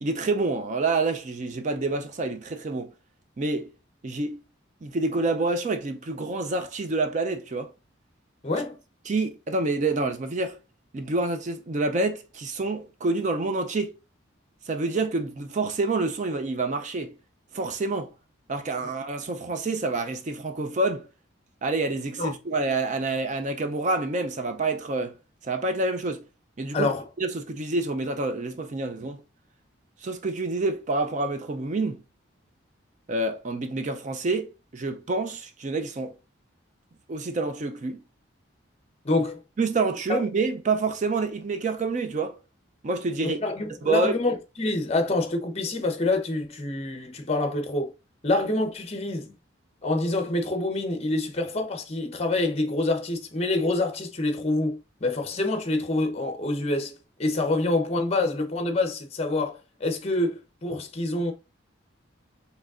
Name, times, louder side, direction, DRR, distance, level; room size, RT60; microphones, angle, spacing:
voice 1, 0.0-2.9 3.4-3.7 4.0-4.4 4.8-7.7 9.1-10.6 10.9-14.0 14.7-17.1 17.5-18.1 18.5-21.1 21.6-25.2 25.4-26.2 26.6-26.9 27.2-29.2 30.0-32.0 33.1-36.2 37.1-38.0 39.6-42.4 42.8-43.4 43.8-44.1, right 3 dB, 40° right, 0.4 m, -27 dB
voice 2, 8.4-8.8 22.2-22.3 26.7-27.0 39.0-39.4 40.1-40.2 43.2-47.9 48.2-49.4 49.8-61.3, left 2 dB, 30° left, 0.7 m, -26 dB
5.0 x 3.3 x 2.4 m
head